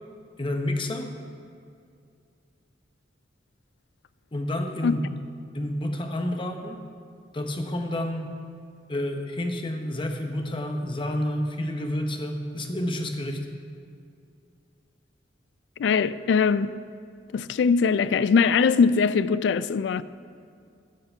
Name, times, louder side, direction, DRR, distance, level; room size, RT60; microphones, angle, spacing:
voice 1, 0.4-1.1 4.3-5.1 5.5-6.8 7.3-8.3 8.9-13.4, left 1 dB, 30° left, 0.9 m, -29 dB
voice 2, 15.8-16.7 17.3-20.0, left 5 dB, 65° left, 0.3 m, -21 dB
10.0 x 6.7 x 6.7 m
head